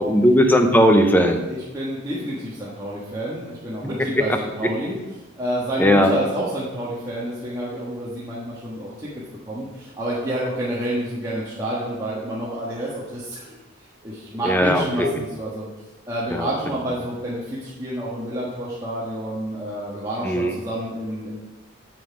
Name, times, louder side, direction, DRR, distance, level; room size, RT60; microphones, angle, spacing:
voice 1, 0.0-1.4 5.8-6.2 14.4-15.1 16.3-16.5 20.2-20.5, equal, 10° left, 5 dB, 0.7 m, -17 dB
voice 2, 1.5-4.9 5.4-9.1 9.4-13.6 14.0-15.7 16.1-21.3, right 1 dB, 20° right, -8 dB, 1.5 m, -29 dB
8.0 x 7.5 x 4.9 m, 1.1 s
head